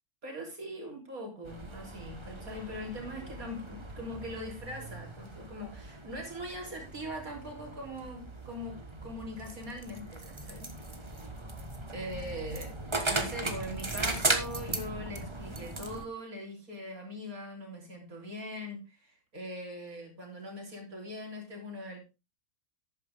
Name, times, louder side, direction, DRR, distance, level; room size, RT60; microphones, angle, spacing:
voice 1, 0.2-10.7 11.0-11.2 11.9-22.0, equal, 75° right, 1 dB, 3.8 m, -41 dB
sound 1, 1.4-16.0, right 2 dB, 20° right, 1.3 m, -37 dB
11.5 x 9.3 x 3.5 m, 0.28 s
omnidirectional pair, 1.5 m